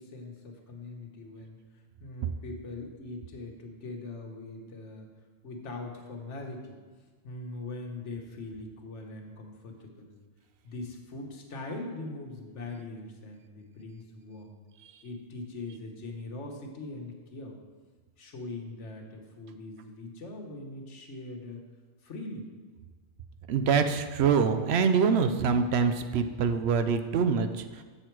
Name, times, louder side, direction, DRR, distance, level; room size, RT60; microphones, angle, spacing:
voice 1, 0.0-1.6 2.0-5.1 5.4-6.8 7.2-10.2 10.6-14.6 15.0-17.6 18.2-21.6 22.0-22.5, left 2 dB, 85° left, 2 dB, 1.4 m, -41 dB
voice 2, 23.5-27.8, right 6 dB, 70° right, 9 dB, 0.8 m, -25 dB
7.7 x 6.5 x 4.5 m, 1.4 s
omnidirectional pair, 1.2 m